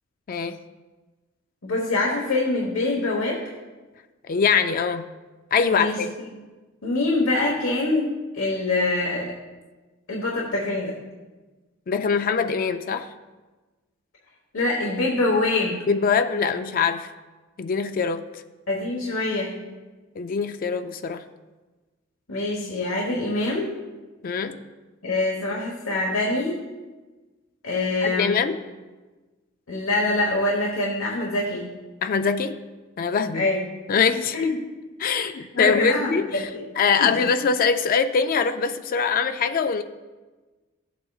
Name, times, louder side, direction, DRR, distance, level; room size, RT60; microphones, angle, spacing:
voice 1, 0.3-0.6 4.3-5.1 5.5-6.1 11.9-13.1 15.9-17.1 17.6-18.4 20.2-21.2 24.2-24.6 28.0-28.6 32.0-32.6 33.0-33.5 33.9-34.4 35.0-36.5 36.8-39.8, left 5 dB, 45° left, 9 dB, 0.4 m, -23 dB
voice 2, 1.6-3.4 5.7-6.1 6.8-9.3 10.1-10.9 14.5-15.7 18.7-19.5 22.3-23.7 25.0-26.6 27.6-28.4 29.7-31.7 33.3-33.6 34.3-34.6 35.1-35.2 35.5-36.6 37.0-37.1, left 2 dB, 80° left, -2 dB, 1.3 m, -24 dB
14.5 x 8.0 x 2.4 m, 1.3 s
head